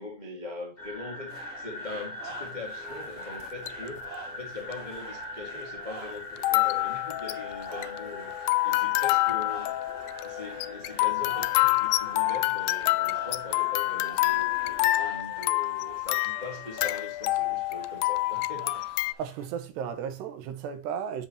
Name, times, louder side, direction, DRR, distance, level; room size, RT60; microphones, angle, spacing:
voice 1, 0.0-9.8 10.2-19.0, left 2 dB, 55° left, 0.5 m, -42 dB
sound 1, 0.8-14.9, left 3 dB, 25° left, 1.6 m, -42 dB
sound 2, 1.3-19.5, right 4 dB, 40° right, 4.1 m, -48 dB
sound 3, 3.4-3.9 4.7-4.8 6.4-19.1, left 19 dB, 85° left, 2.0 m, -27 dB
voice 2, 19.2-21.3, right 8 dB, 90° right, 3.4 m, -34 dB
8.5 x 7.5 x 2.9 m
omnidirectional pair, 4.7 m